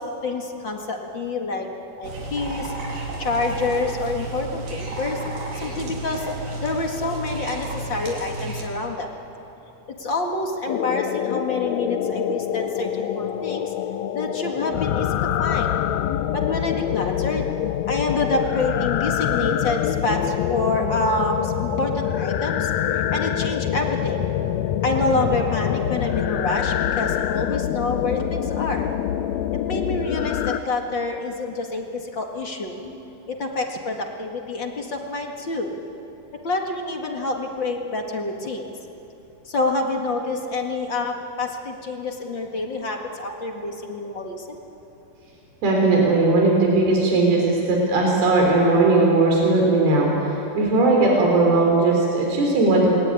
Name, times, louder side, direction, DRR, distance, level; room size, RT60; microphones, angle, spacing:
voice 1, 0.0-1.7 2.0-2.7 3.2-5.2 5.5-9.1 9.9-13.7 14.1-15.8 16.3-17.5 17.9-24.3 24.8-28.9 29.7-32.7 33.3-35.7 36.4-38.7 39.4-44.6, left 2 dB, 40° left, 2 dB, 2.1 m, -27 dB
sound 1, 2.0-8.6, right 2 dB, 70° right, 5.5 m, -32 dB
sound 2, 10.7-30.6, left 11 dB, 90° left, 1.5 m, -25 dB
voice 2, 45.6-53.0, right 2 dB, 90° right, -1 dB, 5.7 m, -18 dB
28.0 x 21.5 x 9.9 m, 2.9 s
omnidirectional pair, 4.3 m